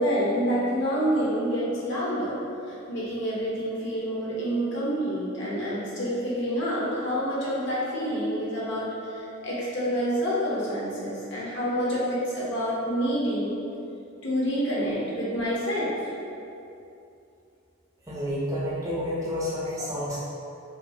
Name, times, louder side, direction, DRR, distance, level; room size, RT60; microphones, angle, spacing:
voice 1, 0.0-2.4 2.7-13.6 14.2-15.9, equal, 60° left, -7 dB, 0.6 m, -27 dB
voice 2, 18.1-20.2, left 1 dB, 15° right, -7 dB, 0.4 m, -30 dB
2.5 x 2.3 x 2.6 m, 2.7 s
head